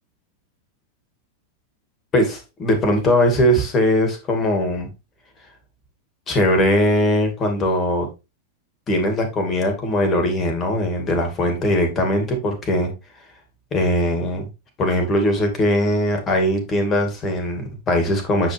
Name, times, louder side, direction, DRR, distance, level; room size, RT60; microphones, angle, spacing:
voice 1, 2.1-4.9 6.3-8.1 8.9-12.9 13.7-14.5 14.8-18.5, left 1 dB, 25° left, 2.5 m, -20 dB
8.6 x 5.4 x 3.4 m
figure-of-eight pair, 90°, 0 cm